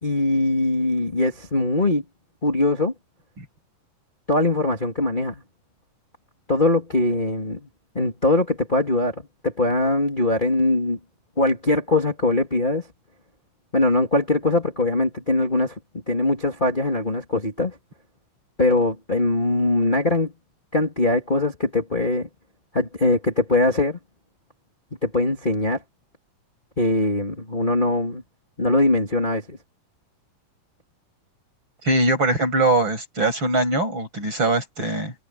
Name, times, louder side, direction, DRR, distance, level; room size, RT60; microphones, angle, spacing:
voice 1, 0.0-2.0 2.4-2.9 4.3-5.4 6.5-7.7 7.9-11.0 11.4-12.9 13.7-15.8 16.1-17.8 18.6-20.3 20.7-22.3 22.7-24.0 25.0-25.8 26.8-28.2 28.6-29.6, left 2 dB, 15° left, 3.3 m, -21 dB
voice 2, 31.8-35.1, right 2 dB, 35° right, 8.5 m, -22 dB
omnidirectional pair, 3.9 m